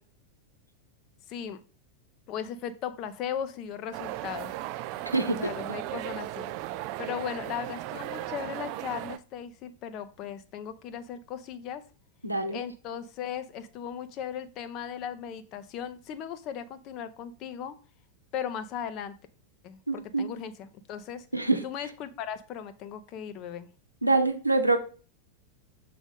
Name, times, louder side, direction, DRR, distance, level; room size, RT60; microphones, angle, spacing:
voice 1, 1.3-1.6 2.3-4.6 4.9-6.5 7.0-11.8 12.5-17.8 18.3-19.1 19.6-21.3 21.6-23.7, left 8 dB, 40° left, 11 dB, 0.6 m, -37 dB
sound 1, 3.9-9.2, right 15 dB, 45° right, 0.3 m, -36 dB
voice 2, 5.1-5.5 12.2-12.6 19.9-20.3 21.3-21.6 24.0-24.8, right 2 dB, 85° right, 6 dB, 0.8 m, -25 dB
7.0 x 3.8 x 3.6 m, 0.37 s
figure-of-eight pair, 90°, 0 cm